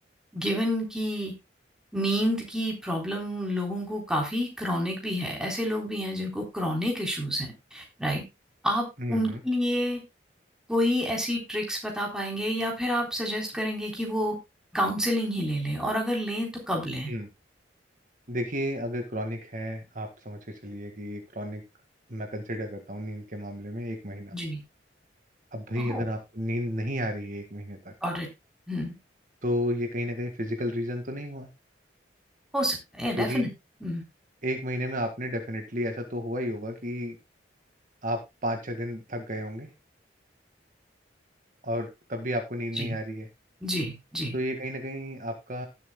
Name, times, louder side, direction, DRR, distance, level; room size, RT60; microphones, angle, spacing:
voice 1, 0.3-1.3 1.9-8.2 8.6-10.0 10.7-14.4 14.7-17.1 24.3-24.6 25.8-26.1 28.0-28.3 28.7-28.9 32.5-33.5 33.8-34.0 42.8-43.0 43.6-44.3, equal, 5° right, -1 dB, 3.6 m, -29 dB
voice 2, 9.0-9.4 17.1-17.3 18.3-21.6 22.1-24.3 25.5-27.9 29.4-31.5 33.2-33.5 34.4-37.2 38.0-39.7 41.6-43.3 44.3-45.7, equal, 45° right, 5 dB, 1.8 m, -32 dB
18.5 x 7.7 x 2.2 m, 0.23 s
head